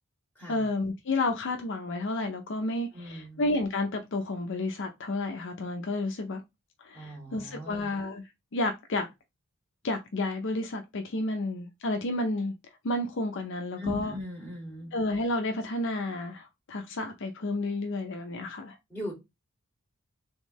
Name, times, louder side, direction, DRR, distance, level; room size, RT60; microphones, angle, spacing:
voice 1, 0.5-6.4 6.8-8.2 8.5-9.1 9.8-12.5 12.8-14.1 14.9-18.8, left 2 dB, 55° left, 0.6 m, -31 dB
voice 2, 2.9-3.4 6.9-7.9 13.8-14.9 18.9-19.1, left 1 dB, 10° left, 2.1 m, -39 dB
3.6 x 3.5 x 3.0 m
head